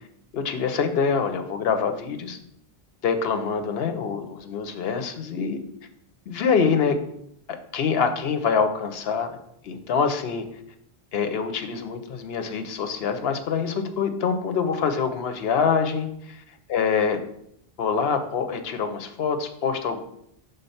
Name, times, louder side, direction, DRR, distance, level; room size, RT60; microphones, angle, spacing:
voice 1, 0.3-2.4 3.0-5.6 6.3-7.0 7.7-9.4 9.6-10.4 11.1-16.4 16.7-17.2 17.8-20.0, left 6 dB, 70° left, 7 dB, 0.9 m, -25 dB
5.3 x 3.7 x 5.6 m, 0.74 s
omnidirectional pair, 1.1 m